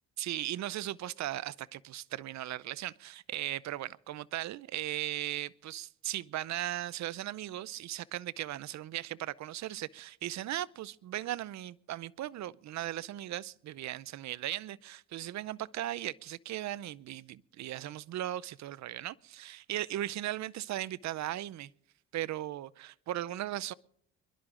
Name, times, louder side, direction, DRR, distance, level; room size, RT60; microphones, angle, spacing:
voice 1, 0.2-21.7 22.1-23.7, right 13 dB, 65° right, 0.6 m, -37 dB
25.5 x 11.5 x 3.8 m
cardioid pair, 90°, 30 cm